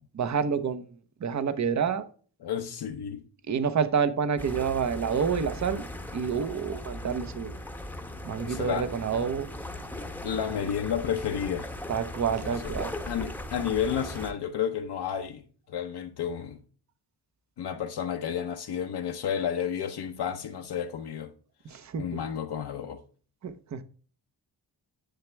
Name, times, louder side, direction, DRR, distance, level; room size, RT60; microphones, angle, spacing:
voice 1, 0.1-0.9 1.2-2.1 3.5-5.8 6.1-7.5 8.2-9.5 11.9-12.9 21.7-22.2 23.4-23.8, right 6 dB, 45° right, 0.9 m, -28 dB
voice 2, 2.4-3.2 8.4-8.9 10.2-11.7 12.4-12.5 13.1-15.4 15.7-16.6 17.6-21.3 22.0-23.0, left 8 dB, 70° left, 1.0 m, -31 dB
sound 1, 4.4-14.3, left 1 dB, 5° left, 0.9 m, -38 dB
10.5 x 7.2 x 3.4 m
wide cardioid pair, 150°, 41 cm